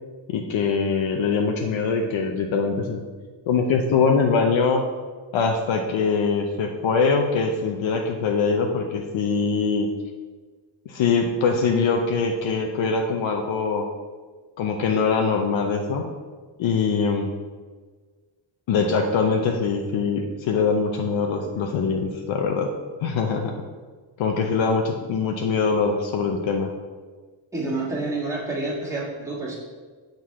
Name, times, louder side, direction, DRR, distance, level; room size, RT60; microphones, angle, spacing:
voice 1, 0.3-3.0 3.5-4.8 5.3-9.9 10.9-13.8 14.6-16.1 16.6-17.3 18.7-22.7 23.0-23.5 24.2-26.7, left 5 dB, 70° left, 3 dB, 0.7 m, -23 dB
voice 2, 27.5-29.6, right 2 dB, 5° right, -5 dB, 1.6 m, -28 dB
6.5 x 3.9 x 4.6 m, 1.5 s
cardioid pair, 120°, 48 cm